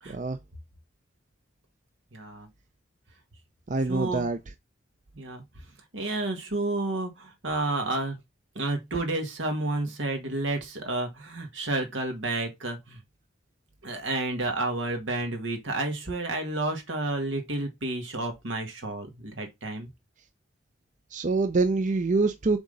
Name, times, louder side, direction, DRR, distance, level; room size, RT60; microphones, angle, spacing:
voice 1, 0.1-0.4 3.7-4.4 21.1-22.6, right 3 dB, 40° right, 0.5 m, -25 dB
voice 2, 2.1-2.5 3.9-4.3 5.1-5.4 5.9-8.2 8.6-13.0 13.8-19.9, right 2 dB, 85° right, 1.8 m, -30 dB
7.1 x 3.8 x 4.0 m
head